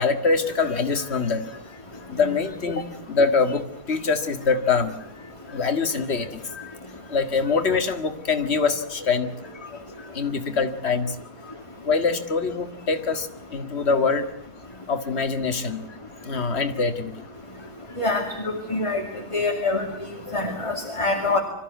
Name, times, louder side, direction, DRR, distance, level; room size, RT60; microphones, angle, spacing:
voice 1, 0.0-1.6 2.1-6.8 7.1-11.2 11.4-11.5 11.8-14.3 14.9-15.8 16.2-17.1 20.3-20.6, left 4 dB, 40° left, 8 dB, 2.1 m, -25 dB
voice 2, 18.7-19.0 19.3-19.8 20.3-21.4, left 3 dB, 20° left, 3 dB, 2.6 m, -24 dB
25.5 x 14.5 x 9.3 m, 0.82 s
omnidirectional pair, 1.7 m